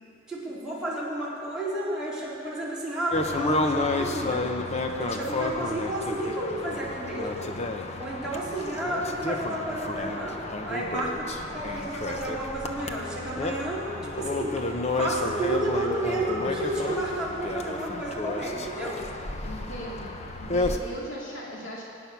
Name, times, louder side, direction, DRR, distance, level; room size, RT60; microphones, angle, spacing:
voice 1, 0.3-4.4 5.0-7.5 8.0-19.0, right 1 dB, 5° right, -9 dB, 4.0 m, -31 dB
sound 1, 3.1-20.8, left 2 dB, 35° left, 0.9 m, -31 dB
voice 2, 19.4-20.1 20.4-21.8, equal, 75° left, -4 dB, 2.4 m, -38 dB
23.5 x 9.9 x 6.1 m, 2.8 s
head